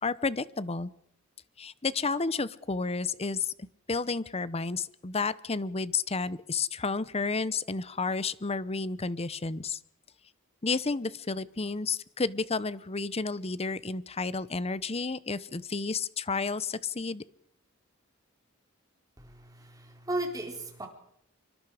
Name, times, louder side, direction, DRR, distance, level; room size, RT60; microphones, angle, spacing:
voice 1, 0.0-0.9 1.6-9.8 10.6-17.2, left 4 dB, 30° left, 18 dB, 0.8 m, -31 dB
voice 2, 19.2-20.9, right 1 dB, 15° right, 3 dB, 4.2 m, -36 dB
26.0 x 24.5 x 5.0 m, 0.70 s
head